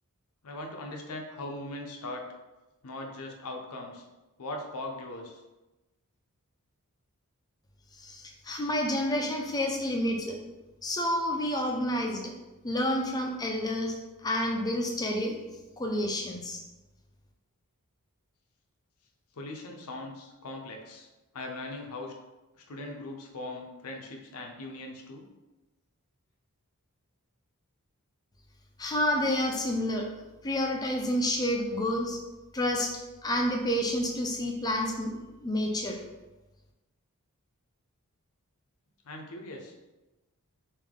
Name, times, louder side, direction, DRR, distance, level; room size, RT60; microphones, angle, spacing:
voice 1, 0.4-2.3 2.8-4.0 4.4-5.4 19.3-21.1 21.3-22.1 22.6-25.2 39.1-39.8, left 2 dB, 75° left, 2 dB, 0.6 m, -40 dB
voice 2, 8.0-10.4 10.8-12.3 12.6-13.9 14.2-15.4 15.8-16.6 28.8-30.1 30.4-32.2 32.5-32.9 33.2-36.0, left 1 dB, 15° left, 1 dB, 0.5 m, -29 dB
3.5 x 2.6 x 3.6 m, 1.1 s
head